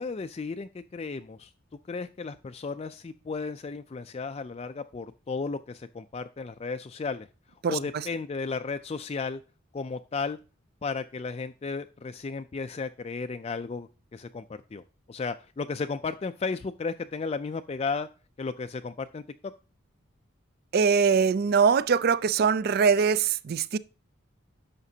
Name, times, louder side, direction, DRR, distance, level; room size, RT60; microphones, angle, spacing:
voice 1, 0.0-1.5 1.9-7.3 7.7-9.4 9.7-10.4 10.8-14.4 14.7-14.8 15.1-18.1 18.4-19.2, left 4 dB, 30° left, 0.3 m, -34 dB
voice 2, 20.7-23.8, right 6 dB, 50° right, 0.4 m, -22 dB
11.0 x 6.7 x 2.8 m
head